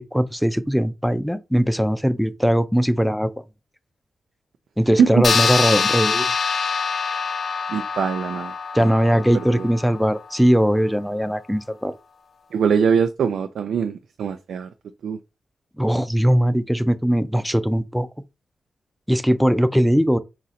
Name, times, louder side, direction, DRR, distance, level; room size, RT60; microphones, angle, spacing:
voice 1, 0.0-3.3 4.8-6.3 8.7-11.9 15.8-18.1 19.1-20.2, equal, ahead, 0.4 m, -20 dB
sound 1, 5.2-10.1, left 5 dB, 55° left, 0.6 m, -24 dB
voice 2, 7.7-8.5 8.8-9.7 12.5-14.7 15.0-15.2, right 6 dB, 85° right, 0.3 m, -22 dB
4.0 x 2.5 x 4.1 m
cardioid pair, 90°, 0 cm